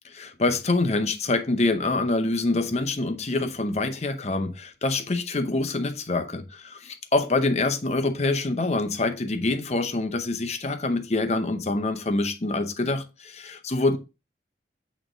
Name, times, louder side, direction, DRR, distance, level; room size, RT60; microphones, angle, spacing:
voice 1, 0.2-14.0, left 2 dB, 35° left, 0.7 m, -25 dB
8.5 x 3.1 x 3.7 m
head